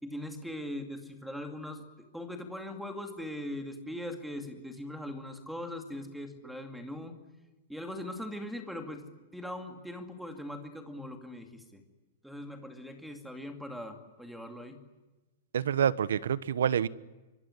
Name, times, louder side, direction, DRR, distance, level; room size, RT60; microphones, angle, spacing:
voice 1, 0.0-7.2 7.7-9.0 9.3-11.8 12.2-14.8, left 1 dB, ahead, 2.4 m, -40 dB
voice 2, 15.5-16.9, right 8 dB, 90° right, 1.2 m, -27 dB
25.0 x 24.0 x 9.8 m
supercardioid pair, 175°, 0 cm